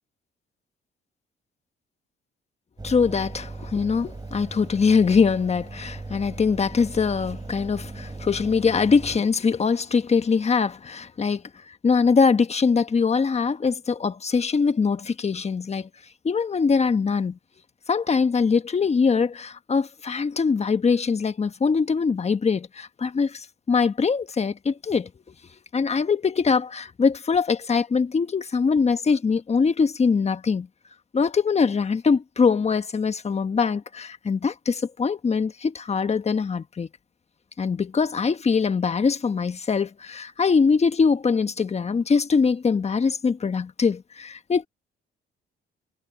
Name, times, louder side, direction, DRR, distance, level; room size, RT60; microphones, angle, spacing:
voice 1, 2.8-15.9 16.2-17.4 17.9-25.1 25.7-30.7 31.1-36.9 37.6-44.7, left 5 dB, 35° left, 1.3 m, -22 dB
Engine, 2.8-9.2, right 3 dB, 20° right, 4.7 m, -38 dB
cardioid pair, 90°, 20 cm